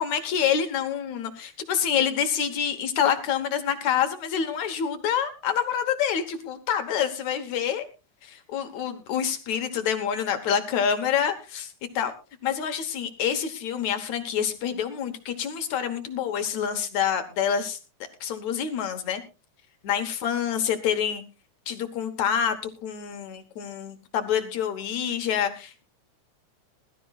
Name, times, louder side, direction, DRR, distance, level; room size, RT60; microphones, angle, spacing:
voice 1, 0.0-7.9 8.2-12.1 12.4-17.8 18.2-19.2 19.8-21.2 21.7-22.6 22.8-25.8, left 8 dB, 70° left, 8 dB, 2.5 m, -27 dB
21.5 x 13.0 x 2.4 m, 0.30 s
omnidirectional pair, 3.4 m